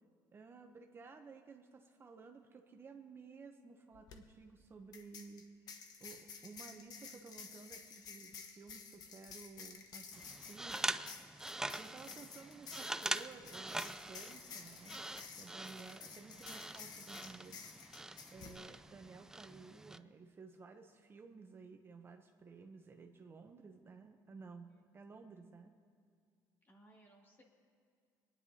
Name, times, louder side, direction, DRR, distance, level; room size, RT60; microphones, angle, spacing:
voice 1, 0.3-10.8 11.8-15.1 15.4-17.6 18.3-25.7, right 4 dB, 30° right, 4 dB, 0.7 m, -55 dB
sound 1, 3.9-4.2 4.9-18.6, left 5 dB, 60° left, 1.1 m, -52 dB
sound 2, 10.1-20.0, right 2 dB, 5° right, 0.3 m, -44 dB
voice 2, 24.7-25.1 26.6-27.4, right 1 dB, 30° left, -1 dB, 2.3 m, -64 dB
24.5 x 10.0 x 2.8 m, 2.2 s
cardioid pair, 100°, 8 cm